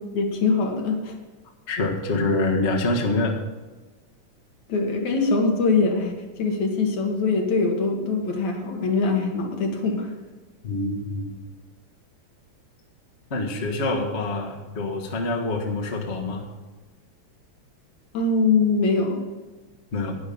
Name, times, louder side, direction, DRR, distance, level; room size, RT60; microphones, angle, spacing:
voice 1, 0.1-1.1 4.7-10.1 18.1-19.2, left 4 dB, 70° left, 2 dB, 2.9 m, -23 dB
voice 2, 1.7-3.4 10.6-11.4 13.3-16.4 19.9-20.2, left 2 dB, 30° left, 0 dB, 1.2 m, -26 dB
11.0 x 10.0 x 5.4 m, 1.3 s
omnidirectional pair, 3.5 m